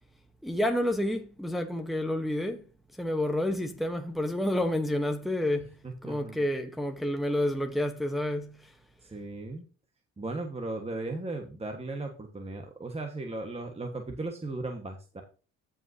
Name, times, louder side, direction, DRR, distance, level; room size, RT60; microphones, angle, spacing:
voice 1, 0.4-2.6 3.0-5.7 6.0-8.7, left 1 dB, ahead, 1.1 m, -29 dB
voice 2, 5.8-6.5 9.0-9.6 10.2-15.2, right 2 dB, 20° right, 1.5 m, -37 dB
14.0 x 5.5 x 2.8 m
cardioid pair, 90°, 30 cm